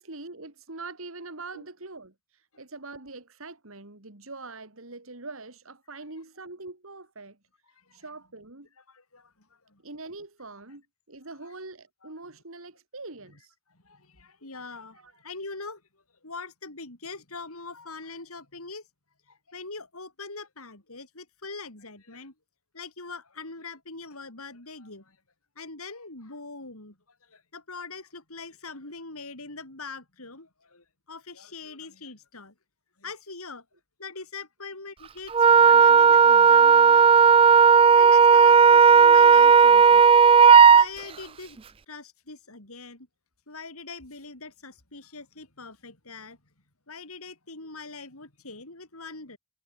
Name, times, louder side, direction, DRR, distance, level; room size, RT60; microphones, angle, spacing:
voice 1, 0.0-2.1 2.6-7.4 7.9-8.7 9.8-13.5 15.0-15.1, right 3 dB, 70° right, 2.9 m, -43 dB
voice 2, 8.9-9.8 13.7-15.8 16.2-18.9 19.3-22.3 22.7-25.2 25.6-32.5 33.0-33.7 34.0-37.1 37.9-40.0 40.7-41.6 41.9-43.1 43.5-46.4 46.9-49.4, left 4 dB, 80° left, 5.3 m, -42 dB
Wind instrument woodwind instrument, 35.3-40.9, right 6 dB, 25° right, 0.3 m, -14 dB
head